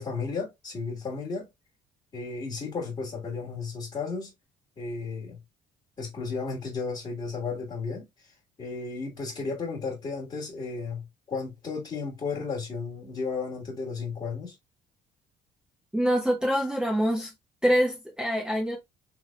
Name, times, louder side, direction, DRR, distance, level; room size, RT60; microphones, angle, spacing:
voice 1, 0.0-1.5 2.1-4.3 4.8-5.4 6.0-14.5, left 4 dB, 30° left, 1.7 m, -34 dB
voice 2, 15.9-17.3 17.6-18.8, equal, 5° right, 1.0 m, -25 dB
3.5 x 3.4 x 2.3 m
cardioid pair, 110°, 17 cm